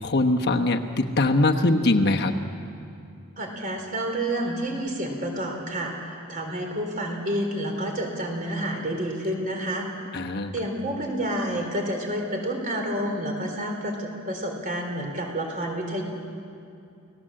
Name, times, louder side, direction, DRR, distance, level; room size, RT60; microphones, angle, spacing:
voice 1, 0.0-2.3 10.1-10.5, left 2 dB, 50° left, 4 dB, 1.1 m, -22 dB
voice 2, 3.4-9.9 10.5-16.0, right 1 dB, 40° right, 2 dB, 4.0 m, -29 dB
30.0 x 17.5 x 7.6 m, 2.5 s
head